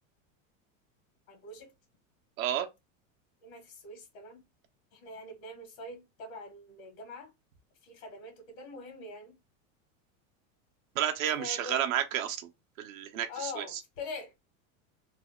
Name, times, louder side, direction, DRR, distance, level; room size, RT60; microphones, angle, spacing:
voice 1, 1.3-1.7 3.4-4.4 4.9-7.3 7.8-9.4 11.4-11.9 13.1-14.4, left 3 dB, 80° left, 1.7 m, -44 dB
voice 2, 2.4-2.7 10.9-12.5 12.8-13.8, right 10 dB, 80° right, 0.8 m, -31 dB
3.4 x 2.0 x 3.5 m
supercardioid pair, 145°, 40 cm